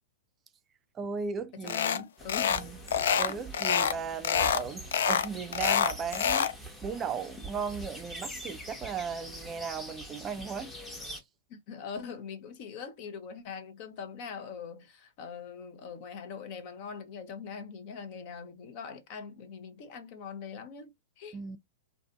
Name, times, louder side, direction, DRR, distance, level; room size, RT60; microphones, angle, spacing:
voice 1, 0.9-2.0 2.5-10.7 21.3-21.6, right 6 dB, 25° right, 0.4 m, -37 dB
voice 2, 1.6-2.7 3.2-3.7 11.5-21.4, left 6 dB, 50° left, 0.7 m, -42 dB
sound 1, 1.7-2.0 2.3-2.6 2.9-4.0 4.2-4.6 4.9-6.5, left 8 dB, 70° left, 0.4 m, -26 dB
sound 2, 2.2-11.2, right 1 dB, 10° left, 0.9 m, -44 dB
2.6 x 2.5 x 2.3 m
hypercardioid pair, 115°, 0 cm